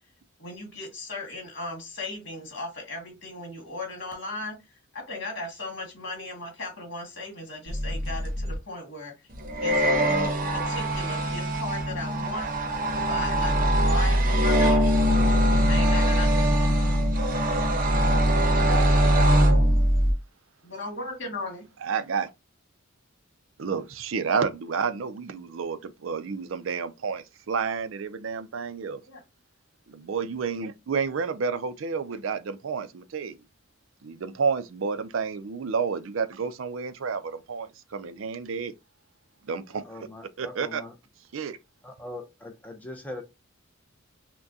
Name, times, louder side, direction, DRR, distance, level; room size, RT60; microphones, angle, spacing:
voice 1, 0.4-4.6 4.9-9.1 9.6-9.9 10.5-12.5 12.9-15.0 15.7-16.7 20.6-21.6 29.1-29.2, left 2 dB, 55° left, 1.9 m, -36 dB
sound 1, 7.7-8.5 9.3-20.1, equal, 40° right, 0.8 m, -22 dB
voice 2, 18.5-18.9 21.8-22.3 23.6-29.0 29.9-33.3 34.0-38.7 39.5-39.8 40.4-40.8 41.3-41.6, right 5 dB, 75° right, 0.5 m, -30 dB
voice 3, 39.7-40.9 41.8-43.2, left 1 dB, 10° left, 0.6 m, -41 dB
5.9 x 2.2 x 2.7 m
head